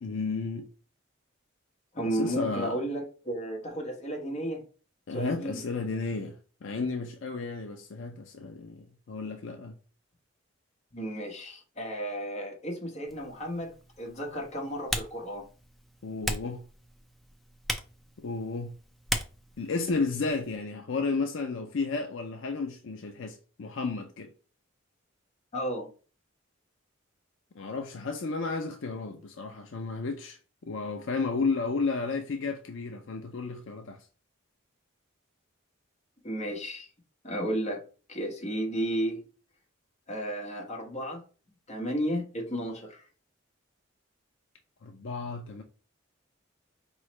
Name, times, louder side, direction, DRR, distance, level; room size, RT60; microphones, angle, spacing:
voice 1, 0.0-0.7 2.0-2.8 5.1-6.4 6.6-9.8 16.0-16.6 18.2-18.7 19.6-24.3 27.6-30.4 30.7-34.1 44.8-45.6, left 4 dB, 65° left, 0.5 m, -32 dB
voice 2, 1.9-4.6 5.1-5.6 10.9-15.5 25.5-25.9 36.2-36.9 37.2-37.8 38.1-39.2 40.1-41.2 41.7-43.0, right 1 dB, 35° left, 1.1 m, -33 dB
Typing, 13.1-20.6, equal, ahead, 0.4 m, -39 dB
4.7 x 3.1 x 3.1 m
head